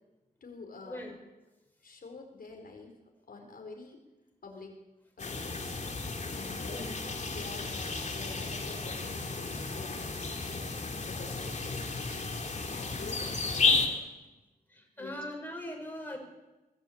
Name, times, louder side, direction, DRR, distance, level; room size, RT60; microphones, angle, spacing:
voice 1, 0.4-1.1 1.8-2.9 3.3-4.0 4.4-4.8 5.2-5.7 6.3-10.7 11.1-14.0 15.0-15.2, left 3 dB, 70° left, 2 dB, 4.6 m, -47 dB
sound 1, 5.2-13.9, left 4 dB, 50° left, 3.3 m, -33 dB
voice 2, 14.7-16.2, left 1 dB, 10° left, 0 dB, 5.8 m, -40 dB
23.5 x 18.0 x 8.7 m, 1.1 s
wide cardioid pair, 150°, 16 cm